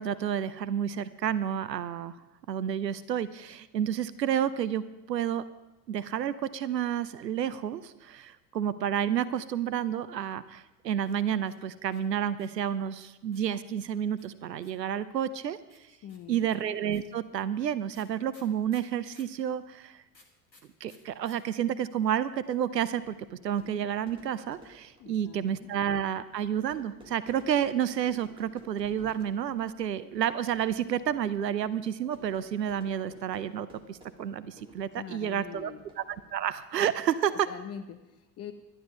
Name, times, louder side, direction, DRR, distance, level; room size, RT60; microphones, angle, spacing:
voice 1, 0.0-2.2 2.5-5.4 5.9-15.6 16.3-20.0 20.8-35.7 36.3-37.5, right 9 dB, 75° right, 15 dB, 0.7 m, -30 dB
sound 1, 11.0-12.7 13.3-14.9 15.7-19.4 20.1-21.4 21.6-21.7 21.9-22.4, left 2 dB, 85° left, 1.9 m, -59 dB
voice 2, 15.9-16.5 25.0-25.7 34.9-35.9 37.5-38.5, left 8 dB, 30° left, 8 dB, 0.9 m, -43 dB
Fire / Fireworks, 22.7-36.7, equal, 10° right, 3.1 m, -57 dB
12.0 x 11.5 x 5.4 m, 1.0 s
figure-of-eight pair, 75°, 50 cm